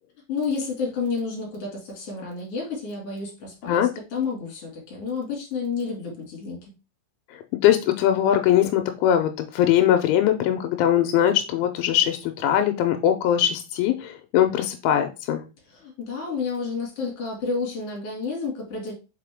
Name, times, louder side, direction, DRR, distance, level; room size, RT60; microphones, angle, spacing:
voice 1, 0.3-6.7 15.7-18.9, left 4 dB, 40° left, -1 dB, 2.7 m, -30 dB
voice 2, 7.6-15.4, left 11 dB, 85° left, 7 dB, 3.1 m, -21 dB
6.3 x 5.1 x 3.6 m, 0.30 s
omnidirectional pair, 5.4 m